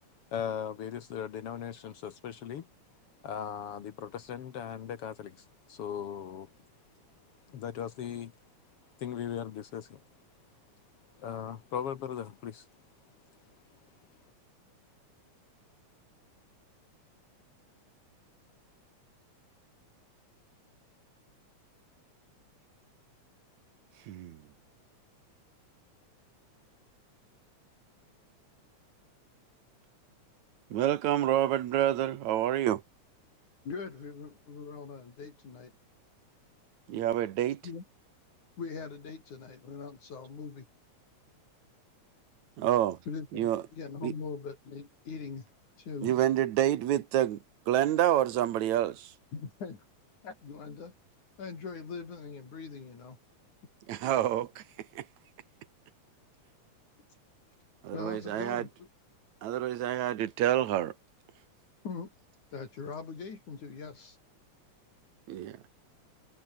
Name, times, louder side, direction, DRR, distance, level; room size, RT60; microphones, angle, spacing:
voice 1, 0.3-2.6 3.2-5.4 5.7-6.5 7.5-8.3 9.0-10.0 11.2-12.6, left 8 dB, 60° left, 1.9 m, -38 dB
voice 2, 24.1-24.4 30.7-32.8 36.9-37.6 42.6-43.0 43.3-43.6 44.0-44.1 46.0-47.4 47.7-49.1 53.9-54.6 55.0-55.1 57.8-58.7 59.4-60.9 65.3-65.6, right 12 dB, 75° right, 2.6 m, -28 dB
voice 3, 33.7-35.7 37.6-37.8 38.6-40.7 43.1-45.5 45.8-46.1 49.3-49.9 50.2-50.9 51.4-53.2 57.9-58.9 61.8-62.1 62.5-64.2, left 5 dB, 75° left, 6.2 m, -41 dB
omnidirectional pair, 3.4 m